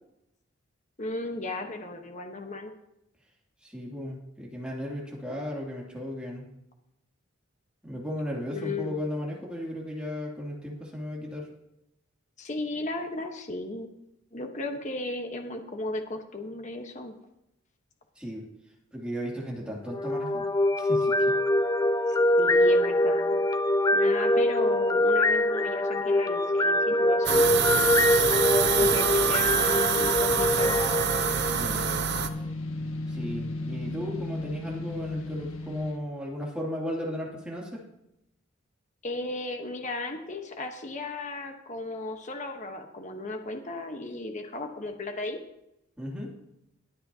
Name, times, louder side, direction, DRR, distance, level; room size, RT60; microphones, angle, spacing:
voice 1, 1.0-2.7 8.5-9.0 12.4-13.9 14.3-17.1 22.4-23.4 23.9-27.5 28.8-30.8 39.0-45.4, left 2 dB, 35° left, 4 dB, 1.1 m, -35 dB
voice 2, 3.6-6.5 7.8-11.5 18.2-18.4 18.9-20.5 20.8-21.4 28.7-29.0 31.5-31.8 33.1-37.8 46.0-46.3, equal, 5° right, -3 dB, 2.6 m, -35 dB
sound 1, 19.9-32.0, left 1 dB, 15° left, 0.3 m, -24 dB
sound 2, 27.3-32.3, right 7 dB, 55° right, 0.7 m, -26 dB
sound 3, 29.7-36.0, left 2 dB, 80° left, 1.3 m, -36 dB
21.5 x 8.6 x 2.8 m, 0.84 s
head